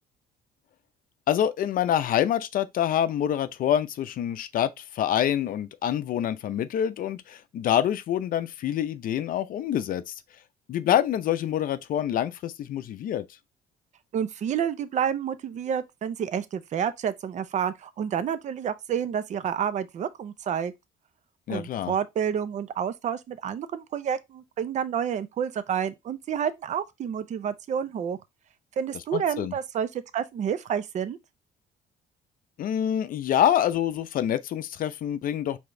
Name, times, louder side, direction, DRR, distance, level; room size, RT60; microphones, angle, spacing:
voice 1, 1.3-10.1 10.7-13.2 21.5-21.9 29.1-29.5 32.6-35.6, left 10 dB, 55° left, 0.5 m, -26 dB
voice 2, 14.1-20.7 21.5-28.2 28.8-31.2, right 8 dB, 45° right, 0.6 m, -29 dB
4.9 x 3.5 x 2.6 m
cardioid pair, 110°, 17 cm